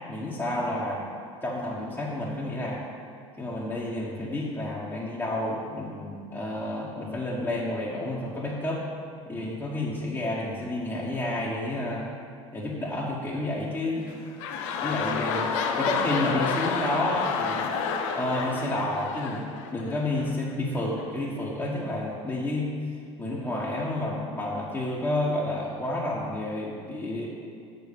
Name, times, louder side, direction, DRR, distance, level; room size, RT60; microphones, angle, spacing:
voice 1, 0.1-1.0 1.4-2.8 3.4-8.8 9.3-12.1 12.5-14.1 14.8-15.5 15.8-17.7 18.1-22.7 23.2-27.3, left 1 dB, 15° left, -7 dB, 1.3 m, -30 dB
sound 1, 13.9-20.3 21.0-21.1, left 6 dB, 70° left, 0.7 m, -30 dB
6.1 x 5.3 x 6.8 m, 2.2 s
hypercardioid pair, 70°, 16 cm